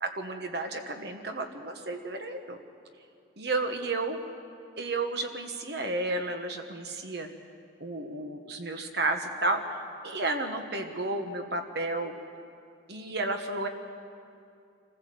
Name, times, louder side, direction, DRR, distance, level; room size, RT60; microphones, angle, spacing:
voice 1, 0.0-2.6 3.4-4.2 4.8-7.3 7.8-9.8 10.0-12.1 12.9-13.7, right 2 dB, 55° right, 5 dB, 1.3 m, -32 dB
26.5 x 15.5 x 7.7 m, 2.5 s
head